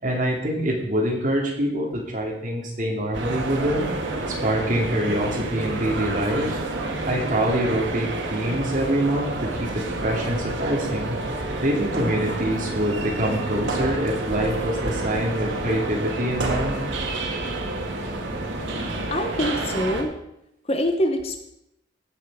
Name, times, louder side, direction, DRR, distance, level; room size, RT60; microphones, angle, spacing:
voice 1, 0.0-3.9 4.3-6.6 7.1-11.2 11.6-16.9, equal, 40° right, -1 dB, 2.7 m, -25 dB
sound 1, 3.1-20.0, right 2 dB, 75° right, 1.8 m, -29 dB
voice 2, 18.5-20.1 20.6-21.4, left 1 dB, 30° left, 6 dB, 0.9 m, -26 dB
16.0 x 6.5 x 4.9 m, 0.82 s
head